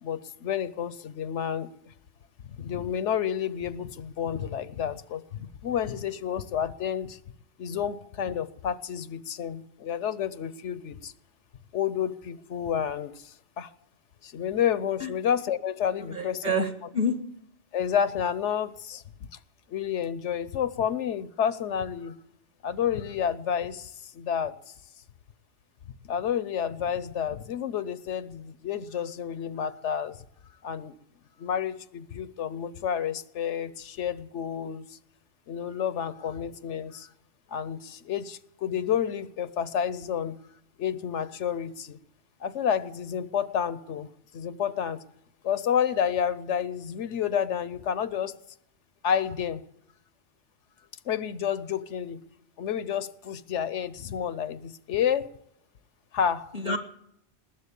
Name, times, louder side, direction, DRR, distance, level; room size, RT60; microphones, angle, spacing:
voice 1, 0.0-1.7 2.4-7.2 7.6-11.1 11.7-13.7 14.2-16.5 17.7-19.0 19.7-22.2 22.6-24.5 26.0-30.2 30.6-30.9 31.4-34.9 35.5-37.1 37.5-40.4 40.8-42.0 42.4-44.1 44.3-45.0 45.4-48.4 49.0-49.6 51.1-52.2 52.6-55.3 56.1-56.8, left 8 dB, 80° left, 15 dB, 1.1 m, -30 dB
voice 2, 16.1-17.2 56.5-56.8, equal, 40° right, 6 dB, 1.8 m, -28 dB
20.0 x 7.7 x 8.3 m, 0.76 s
omnidirectional pair, 1.2 m